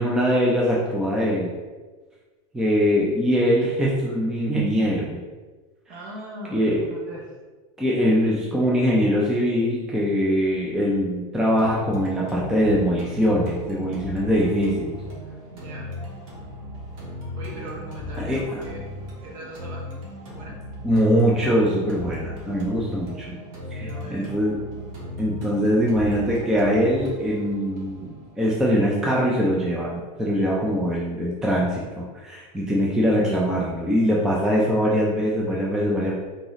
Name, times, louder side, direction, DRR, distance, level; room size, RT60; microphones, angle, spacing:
voice 1, 0.0-1.5 2.5-5.2 6.5-6.8 7.8-14.9 18.2-18.4 20.8-23.4 23.7-24.6 25.2-36.2, equal, 5° right, -4 dB, 0.3 m, -22 dB
voice 2, 5.9-7.3 8.0-8.3 15.5-15.9 17.4-18.9 19.2-20.6 23.7-24.3, right 1 dB, 50° right, -3 dB, 1.3 m, -40 dB
sound 1, 11.6-29.6, left 1 dB, 70° right, 1.4 m, -37 dB
3.9 x 2.9 x 3.9 m, 1.3 s
supercardioid pair, 165°, 18 cm